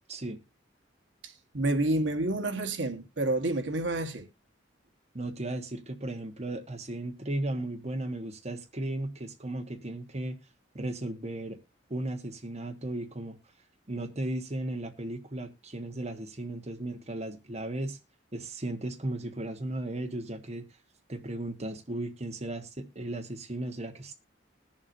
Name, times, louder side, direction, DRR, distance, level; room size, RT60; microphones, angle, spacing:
voice 1, 0.1-0.4 5.1-10.4 10.7-11.6 11.9-13.4 13.9-18.0 18.3-20.6 21.1-24.1, right 1 dB, 35° right, 1.3 m, -35 dB
voice 2, 1.2-4.3, right 2 dB, 70° right, 1.4 m, -29 dB
20.5 x 7.3 x 2.6 m
head